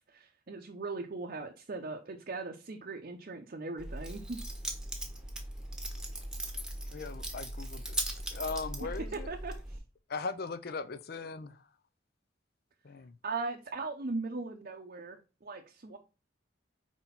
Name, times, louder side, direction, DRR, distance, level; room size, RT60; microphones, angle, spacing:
voice 1, 0.1-4.4 9.1-9.8 13.2-16.0, right 3 dB, 45° right, 0.6 m, -39 dB
Keys jangling, 3.8-9.8, right 1 dB, 5° right, 1.1 m, -39 dB
voice 2, 6.9-8.0 8.3-9.3 10.1-11.7 12.8-13.2, left 4 dB, 50° left, 0.5 m, -39 dB
4.5 x 4.1 x 5.7 m
head